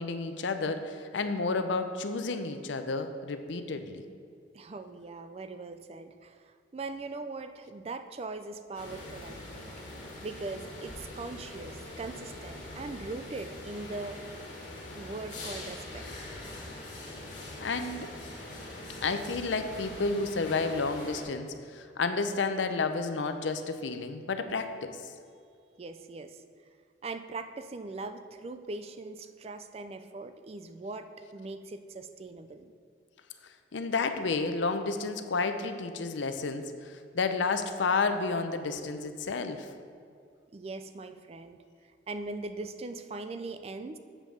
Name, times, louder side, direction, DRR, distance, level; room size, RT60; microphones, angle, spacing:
voice 1, 0.0-4.0 17.6-18.1 19.0-24.9 33.7-39.7, left 4 dB, 85° left, 8 dB, 0.6 m, -31 dB
voice 2, 4.5-9.8 10.2-14.2 14.9-16.3 25.8-26.4 27.0-32.7 40.5-41.6 42.1-44.0, right 3 dB, 35° right, 9 dB, 0.3 m, -40 dB
sound 1, 8.7-21.2, left 1 dB, 40° left, 1.9 m, -43 dB
7.4 x 5.2 x 6.3 m, 2.3 s
head